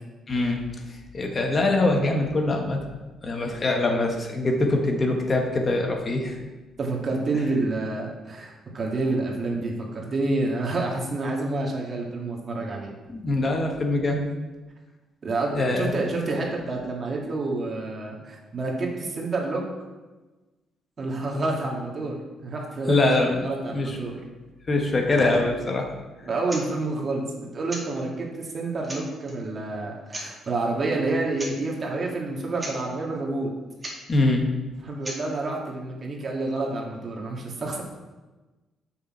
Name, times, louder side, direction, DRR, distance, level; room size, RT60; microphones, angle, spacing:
voice 1, 0.3-0.6 1.1-2.8 3.2-6.4 13.1-14.2 15.5-15.9 22.9-23.4 23.7-24.0 24.7-25.9 34.1-34.4, left 2 dB, 35° left, 2 dB, 1.2 m, -23 dB
voice 2, 6.8-12.9 15.2-19.6 21.0-22.2 22.4-24.1 26.2-33.5 34.8-37.8, right 2 dB, 40° right, -1 dB, 1.8 m, -28 dB
sound 1, 26.5-26.7 27.7-27.9 28.5-28.6 28.8-29.3 30.1-30.3 31.3-31.6 31.8-31.9 32.3-32.4 32.6-32.8 33.8-34.0 35.0-35.2, right 1 dB, 20° right, 2.1 m, -36 dB
6.9 x 6.0 x 4.3 m, 1.2 s
cardioid pair, 90°, 0 cm